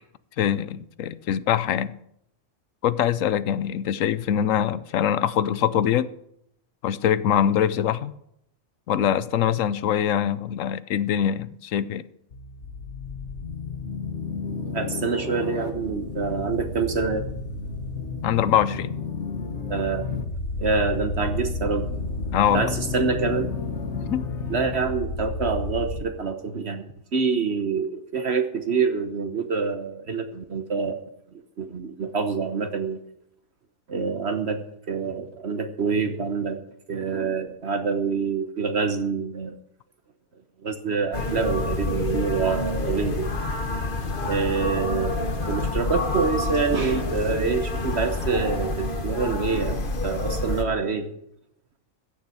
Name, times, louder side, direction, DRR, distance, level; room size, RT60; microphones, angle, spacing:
voice 1, 0.4-1.9 2.8-6.1 6.8-8.1 8.9-12.0 18.2-18.9 22.3-22.7 23.9-24.2, left 9 dB, 80° left, 1.1 m, -23 dB
sound 1, 12.3-26.0, left 3 dB, 60° left, 1.8 m, -31 dB
voice 2, 14.7-17.3 19.7-20.1 20.6-21.9 22.5-23.5 24.0-24.2 24.5-31.0 31.3-33.0 33.9-34.6 34.9-36.6 36.9-39.5 40.6-43.3 44.2-45.2 45.5-51.1, right 5 dB, 55° right, 1.3 m, -26 dB
sound 2, 41.1-50.6, left 2 dB, 40° left, 1.5 m, -28 dB
15.0 x 7.1 x 8.1 m
omnidirectional pair, 1.4 m